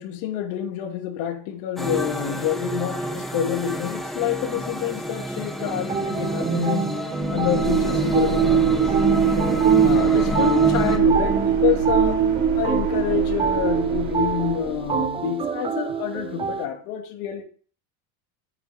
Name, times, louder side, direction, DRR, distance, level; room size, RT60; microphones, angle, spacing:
voice 1, 0.0-9.0 9.4-9.5 9.7-12.3 12.6-17.4, left 10 dB, 65° left, 2.6 m, -28 dB
sound 1, 1.8-11.0, left 1 dB, ahead, 1.2 m, -29 dB
sound 2, 5.6-16.7, right 6 dB, 15° right, 0.5 m, -28 dB
sound 3, 7.2-15.0, right 7 dB, 50° right, 3.0 m, -21 dB
9.1 x 6.6 x 6.4 m
cardioid pair, 150°, 38 cm